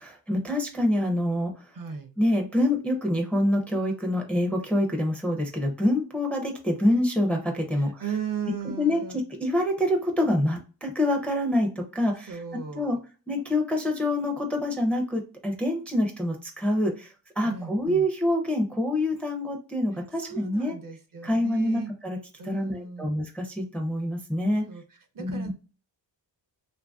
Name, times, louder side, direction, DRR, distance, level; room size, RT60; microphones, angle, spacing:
voice 1, 0.0-1.7 2.2-8.0 8.8-9.0 9.4-12.4 12.7-13.0 13.3-20.7 21.2-22.2 22.5-24.6 25.2-25.5, left 1 dB, 5° left, 2 dB, 0.4 m, -26 dB
voice 2, 1.7-2.1 7.7-9.2 12.2-13.0 17.4-18.1 20.1-21.9 22.4-23.1 24.7-25.5, right 7 dB, 50° right, 6 dB, 0.6 m, -36 dB
2.8 x 2.6 x 2.2 m, 0.34 s
wide cardioid pair, 125°, 44 cm